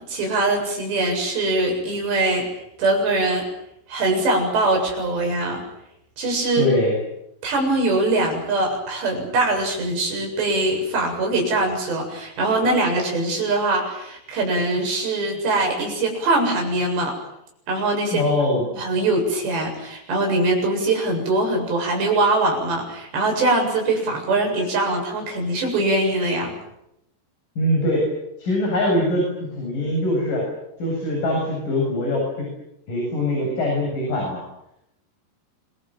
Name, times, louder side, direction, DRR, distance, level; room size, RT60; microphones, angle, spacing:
voice 1, 0.1-2.5 2.8-3.5 3.9-5.6 6.2-6.7 7.4-17.2 17.7-18.2 18.7-26.5, right 2 dB, 80° right, 2 dB, 9.6 m, -22 dB
voice 2, 6.5-7.0 18.1-18.6 27.6-28.1 28.4-30.5 30.8-32.5 32.9-34.4, left 1 dB, 50° left, -1 dB, 9.6 m, -22 dB
28.0 x 23.0 x 7.8 m, 0.82 s
omnidirectional pair, 4.9 m